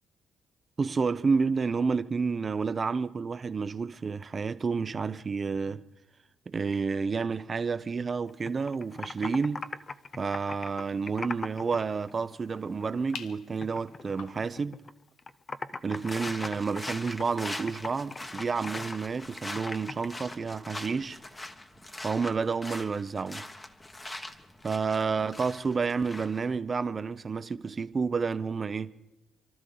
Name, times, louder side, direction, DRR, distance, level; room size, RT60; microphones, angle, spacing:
voice 1, 0.8-5.8 6.5-9.6 10.2-14.8 15.8-21.2 22.0-23.5 24.6-28.9, right 5 dB, 35° right, 0.7 m, -30 dB
Computer keyboard, 8.2-11.8 12.1-13.3 13.6-14.9 15.2-20.4, left 4 dB, 35° left, 0.7 m, -40 dB
sound 1, 9.0-14.5, left 7 dB, 85° left, 1.0 m, -51 dB
sound 2, 15.9-26.5, left 1 dB, 20° left, 1.3 m, -42 dB
29.0 x 12.5 x 3.9 m
cardioid pair, 90°, 0 cm